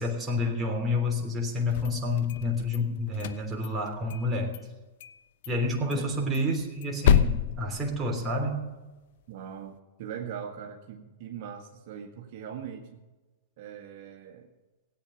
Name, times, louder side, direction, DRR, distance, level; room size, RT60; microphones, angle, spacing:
voice 1, 0.0-4.6 5.5-8.7, left 2 dB, 15° right, 0 dB, 3.3 m, -29 dB
sound 1, 1.6-2.8 3.1-4.3 4.5-4.6 5.0-5.2 5.4-5.5 5.9-8.5, left 9 dB, 65° left, 0.8 m, -28 dB
voice 2, 9.3-13.0 13.6-14.5, right 8 dB, 55° right, 2 dB, 1.7 m, -41 dB
18.0 x 9.0 x 5.8 m, 1.2 s
hypercardioid pair, 130°, 0 cm